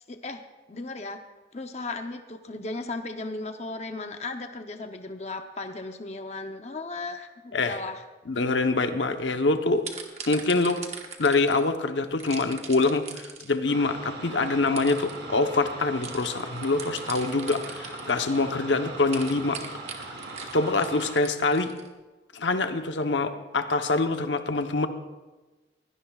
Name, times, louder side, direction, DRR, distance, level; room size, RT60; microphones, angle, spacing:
voice 1, 0.1-0.4 0.7-1.2 1.5-8.4, left 3 dB, 35° left, 6 dB, 0.7 m, -36 dB
voice 2, 8.3-9.8 10.3-10.8 11.2-19.6 20.5-21.7 22.3-24.9, left 3 dB, 90° left, 7 dB, 1.0 m, -25 dB
sound 1, 9.2-9.4 9.8-11.7 12.2-13.6 14.4-14.5 14.8-15.2 16.0-18.5 19.0-21.9, right 6 dB, 35° right, 1.3 m, -40 dB
sound 2, 13.7-21.2, right 3 dB, 75° right, 3.2 m, -40 dB
21.5 x 16.5 x 2.4 m, 1.2 s
head